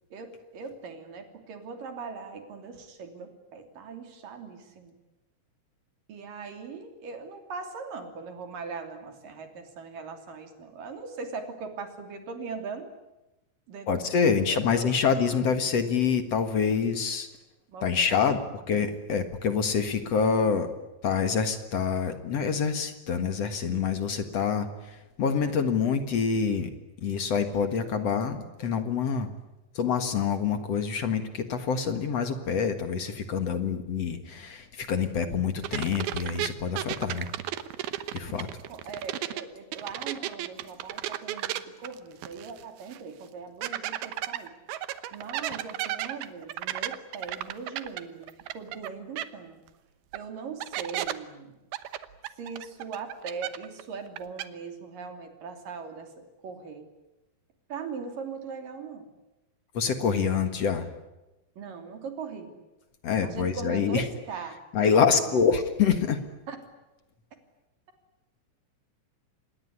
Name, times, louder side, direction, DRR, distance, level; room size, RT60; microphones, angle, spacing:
voice 1, 0.1-4.9 6.1-12.9 13.7-13.9 14.1-14.9 15.3-15.5 17.7-18.2 38.7-44.5 45.1-49.6 50.1-51.6 52.4-56.9 57.7-59.1 61.6-62.6 63.2-65.4 66.5-66.6, right 5 dB, 65° right, 6 dB, 4.6 m, -40 dB
voice 2, 13.9-17.3 17.8-18.4 18.7-20.7 21.0-26.7 27.0-29.3 29.8-37.3 38.1-38.5 59.7-60.9 63.0-64.0 64.7-66.2, left 6 dB, 50° left, 9 dB, 2.4 m, -26 dB
sound 1, 35.6-39.4 39.7-42.6 42.9-43.0 43.6-48.9 49.2-49.3 50.1-50.2 50.6-51.1 51.7-53.8 54.1-54.5, right 13 dB, 85° right, 3.0 m, -33 dB
26.5 x 20.5 x 10.0 m, 1.0 s
omnidirectional pair, 4.2 m